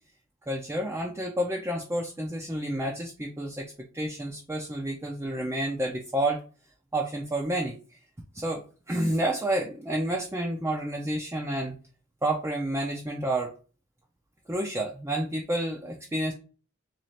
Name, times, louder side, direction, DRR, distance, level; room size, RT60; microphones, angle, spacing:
voice 1, 0.5-3.7 3.9-6.4 6.9-7.8 8.3-11.8 12.2-13.5 14.5-16.3, right 1 dB, 15° right, 0 dB, 0.4 m, -29 dB
3.1 x 2.4 x 4.1 m, 0.36 s
head